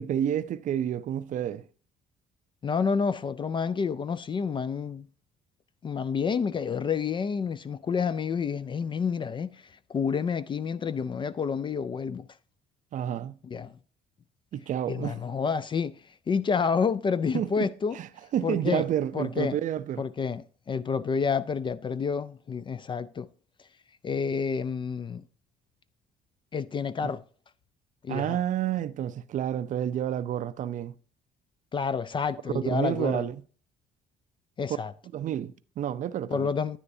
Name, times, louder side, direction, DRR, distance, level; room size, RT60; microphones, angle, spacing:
voice 1, 0.0-1.7 12.9-13.4 14.5-15.2 17.3-20.0 27.0-27.1 28.1-30.9 32.5-33.4 35.1-36.5, right 10 dB, 50° right, 0.5 m, -30 dB
voice 2, 2.6-5.1 5.8-12.3 13.4-13.7 14.9-18.0 18.4-18.8 19.1-19.6 20.0-23.3 24.0-25.2 26.5-27.2 28.0-28.4 31.7-33.2 34.6-34.9 36.3-36.8, left 6 dB, 30° left, 0.4 m, -29 dB
9.8 x 9.5 x 2.7 m
cardioid pair, 110°, 17 cm